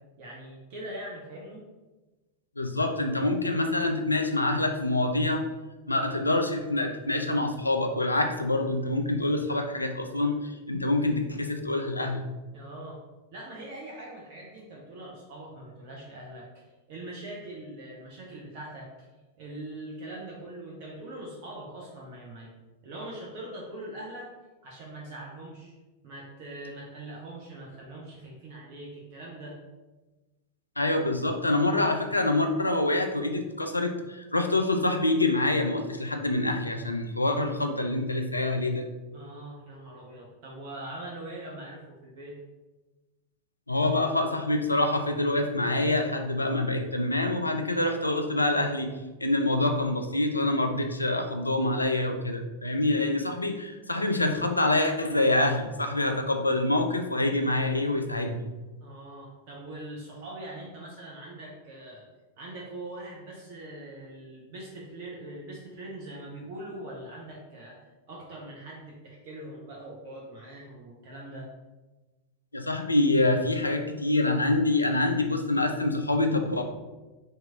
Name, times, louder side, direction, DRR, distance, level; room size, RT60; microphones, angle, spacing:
voice 1, 0.2-1.6 12.5-13.0 13.3-19.1 19.4-22.5 22.8-24.3 24.6-25.7 26.0-29.6 39.1-42.4 58.8-62.0 62.4-71.5, right 1 dB, 50° right, -3 dB, 0.7 m, -42 dB
voice 2, 2.6-5.5 5.9-12.2 30.8-38.9 43.7-48.9 49.2-58.4 72.5-76.6, left 2 dB, 80° left, 6 dB, 0.3 m, -26 dB
3.0 x 2.7 x 3.4 m, 1.2 s
figure-of-eight pair, 90°, 0 cm